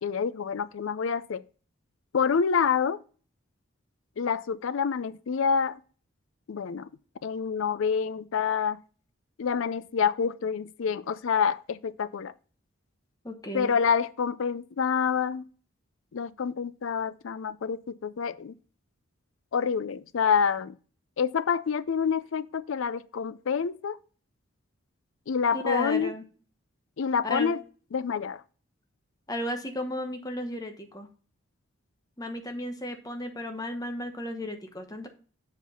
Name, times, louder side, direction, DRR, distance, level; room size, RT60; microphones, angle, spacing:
voice 1, 0.0-1.4 2.1-3.0 4.2-5.8 6.5-6.9 7.2-8.8 9.4-12.3 13.5-15.4 16.1-18.5 19.5-20.8 21.2-24.0 25.3-26.1 27.0-27.6 27.9-28.4, left 6 dB, 70° left, 0.4 m, -27 dB
voice 2, 13.2-13.7 25.5-26.2 27.2-27.5 29.3-31.1 32.2-35.1, left 1 dB, 15° left, 1.0 m, -34 dB
7.1 x 4.4 x 5.4 m
head